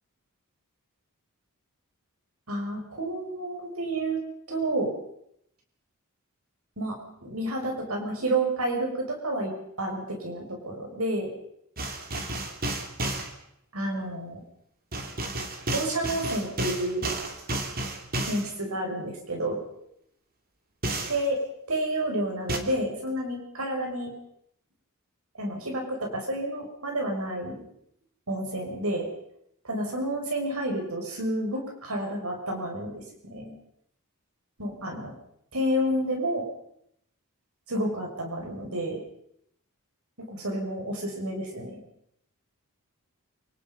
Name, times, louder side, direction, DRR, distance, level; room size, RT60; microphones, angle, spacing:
voice 1, 2.5-4.2 4.5-4.9 6.8-9.5 9.8-11.3 13.7-14.4 15.7-17.0 18.2-19.6 21.1-21.4 21.7-24.1 25.4-27.6 28.3-29.1 29.6-33.5 34.6-35.1 35.5-36.4 37.7-39.0 40.3-41.8, right 1 dB, 70° right, 1 dB, 6.6 m, -30 dB
sound 1, 11.8-13.3 14.9-18.5 20.8-21.2 22.5-22.6, right 2 dB, 40° right, 3.0 m, -31 dB
28.0 x 18.5 x 5.5 m, 0.74 s
head